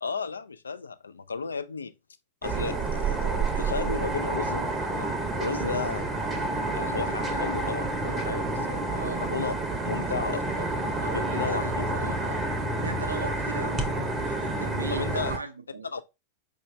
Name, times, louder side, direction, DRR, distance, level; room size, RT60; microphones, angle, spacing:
voice 1, 0.0-1.9 2.4-5.1 5.4-6.1 6.7-9.5 9.8-10.7 11.1-11.9 14.9-15.3 15.9-16.0, left 5 dB, 75° left, 0.3 m, -34 dB
sound 1, 2.4-15.4, right 2 dB, 15° right, 0.7 m, -29 dB
voice 2, 8.9-9.2 11.0-12.5 12.8-13.9 14.4-15.9, right 3 dB, 80° right, 0.5 m, -37 dB
4.7 x 2.5 x 3.1 m
figure-of-eight pair, 90°, 0 cm